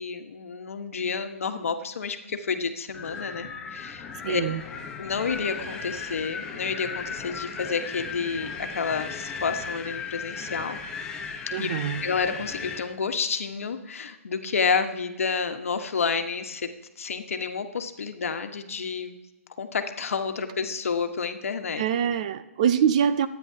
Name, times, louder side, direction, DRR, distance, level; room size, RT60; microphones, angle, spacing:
voice 1, 0.0-4.4 5.0-10.8 11.6-11.7 12.0-16.7 17.0-19.2 19.6-21.8, left 5 dB, 65° left, 7 dB, 1.3 m, -30 dB
Wind, 2.9-12.9, left 5 dB, 10° left, 0.8 m, -36 dB
voice 2, 4.2-4.6 11.5-12.0 21.8-23.3, right 8 dB, 30° right, 12 dB, 0.5 m, -24 dB
23.5 x 9.8 x 2.8 m, 1.1 s
hypercardioid pair, 165°, 8 cm